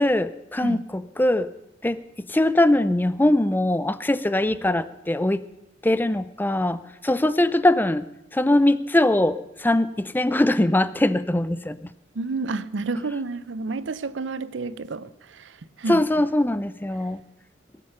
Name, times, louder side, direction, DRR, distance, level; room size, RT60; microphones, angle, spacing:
voice 1, 0.0-1.5 1.8-5.4 5.8-8.1 8.3-11.9 15.9-17.2, left 1 dB, 10° left, 0.5 m, -22 dB
voice 2, 12.1-16.0, right 3 dB, 75° right, 0.6 m, -30 dB
20.5 x 9.2 x 6.7 m
head